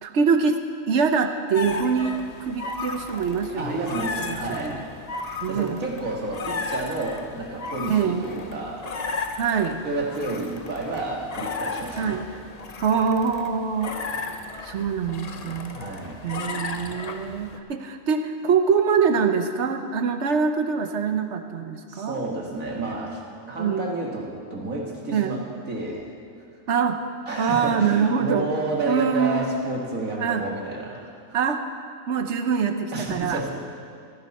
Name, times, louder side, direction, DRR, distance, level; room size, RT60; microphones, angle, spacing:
voice 1, 0.0-3.8 4.2-4.8 5.4-5.8 7.9-8.3 9.4-9.8 12.0-12.2 12.8-14.0 14.6-15.8 16.2-22.2 23.6-23.9 25.1-25.4 26.7-27.0 27.4-28.5 28.9-29.5 30.2-30.4 31.3-31.6 32.1-33.4, right 6 dB, 60° right, 7 dB, 1.1 m, -24 dB
sound 1, 1.5-17.6, left 4 dB, 40° left, 0.7 m, -35 dB
voice 2, 3.6-4.8 5.5-9.1 9.8-12.2 15.7-16.2 21.9-23.2 23.5-26.1 27.3-31.4 32.9-33.5, right 2 dB, 85° right, -1 dB, 2.4 m, -30 dB
15.5 x 14.0 x 4.2 m, 2.2 s
omnidirectional pair, 1.4 m